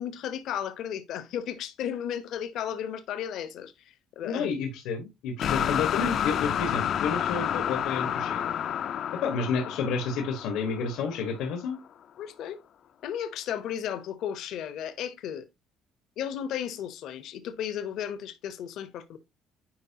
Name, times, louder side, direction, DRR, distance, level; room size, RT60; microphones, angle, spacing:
voice 1, 0.0-3.7 4.2-4.5 12.2-12.6 13.0-15.5 16.2-19.2, left 9 dB, 60° left, 0.8 m, -34 dB
voice 2, 4.2-8.5 9.2-11.8, left 5 dB, 85° left, 1.5 m, -30 dB
sound 1, 5.4-11.4, left 9 dB, 45° left, 0.4 m, -30 dB
9.6 x 4.5 x 2.8 m
cardioid pair, 165°, 0 cm